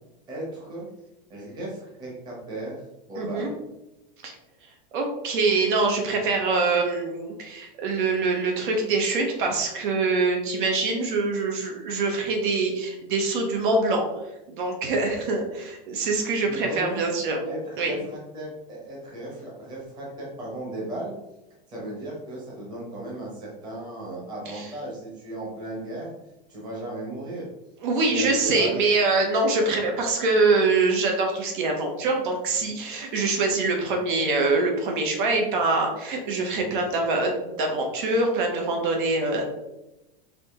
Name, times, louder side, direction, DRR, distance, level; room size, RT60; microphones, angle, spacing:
voice 1, 0.3-0.9 1.3-2.8 3.1-3.6 16.5-17.1 17.5-21.1 21.7-26.1 26.5-27.5 28.0-28.8, right 1 dB, 15° right, -4 dB, 1.0 m, -36 dB
voice 2, 3.2-3.5 4.2-4.3 4.9-14.1 14.5-17.4 17.8-18.0 24.5-24.7 27.8-39.5, right 3 dB, 60° right, 2 dB, 1.0 m, -24 dB
5.0 x 2.8 x 3.7 m, 0.95 s
supercardioid pair, 180°, 29 cm